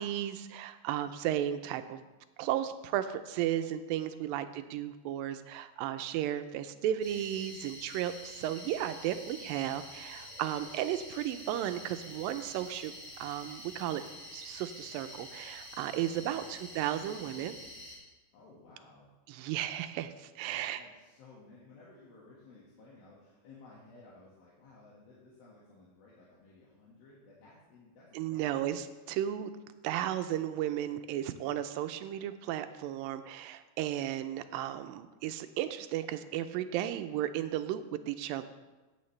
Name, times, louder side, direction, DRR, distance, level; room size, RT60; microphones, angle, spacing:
voice 1, 0.0-2.0 2.4-14.0 14.3-17.6 19.3-20.8 28.1-29.5 29.8-38.4, right 11 dB, 80° right, 10 dB, 2.2 m, -34 dB
voice 2, 4.3-4.9 9.3-9.9 15.9-16.6 18.3-19.1 20.4-28.7, left 3 dB, 80° left, -6 dB, 3.5 m, -57 dB
sound 1, 7.0-18.0, left 1 dB, 15° left, 3.8 m, -47 dB
16.0 x 8.8 x 3.2 m, 1.2 s
omnidirectional pair, 4.3 m